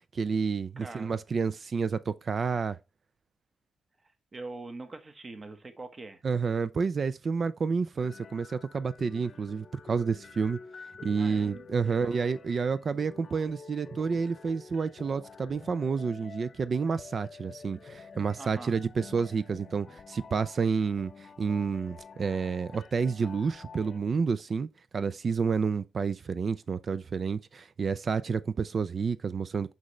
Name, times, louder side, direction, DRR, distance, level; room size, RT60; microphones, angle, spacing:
voice 1, 0.1-2.8 6.2-10.6 11.0-24.7 24.9-29.7, right 5 dB, 50° right, 0.4 m, -29 dB
voice 2, 0.8-1.1 4.3-6.2 11.2-11.6 11.8-12.2 18.4-18.7, right 3 dB, 35° right, 1.2 m, -43 dB
sound 1, 8.0-24.0, left 5 dB, 50° left, 0.7 m, -49 dB
6.1 x 5.3 x 3.1 m
cardioid pair, 85°, 0 cm